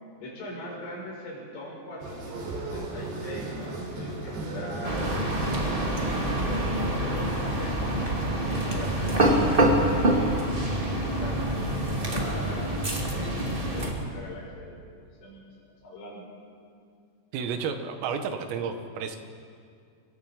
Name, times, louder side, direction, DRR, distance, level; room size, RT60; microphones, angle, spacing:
voice 1, 0.1-7.3 7.6-7.8 8.4-12.8 13.1-14.8 15.2-15.4 15.8-16.3, left 1 dB, 65° left, -3 dB, 7.8 m, -41 dB
sound 1, 2.0-9.1, right 2 dB, 55° right, 5.5 m, -36 dB
sound 2, 4.8-13.9, right 1 dB, 30° right, 0.9 m, -26 dB
voice 2, 17.3-19.2, right 6 dB, 80° right, 7 dB, 4.0 m, -31 dB
28.5 x 23.0 x 5.1 m, 2.3 s
omnidirectional pair, 6.0 m